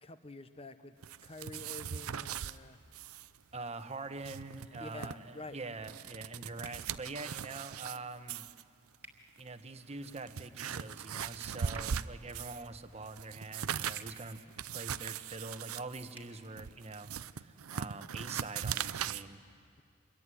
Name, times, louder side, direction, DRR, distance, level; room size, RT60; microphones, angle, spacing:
voice 1, 0.0-0.9 1.2-2.8 4.8-5.6, left 2 dB, 25° left, 11 dB, 1.0 m, -48 dB
sound 1, 1.0-2.6 2.9-3.3 3.5-3.6 4.1-5.1 5.7-8.0 8.3-8.6 9.4-9.5 10.0-12.7 13.0-19.2, right 8 dB, 85° right, 0.6 m, -39 dB
voice 2, 3.5-8.5 9.4-14.4 14.7-19.4, right 3 dB, 30° right, 9 dB, 1.1 m, -44 dB
sound 2, 6.6-6.8 9.0-9.2 11.7-11.9 13.9-14.1 16.1-16.3, right 2 dB, 10° right, 2.3 m, -52 dB
26.5 x 22.5 x 9.9 m, 2.2 s
head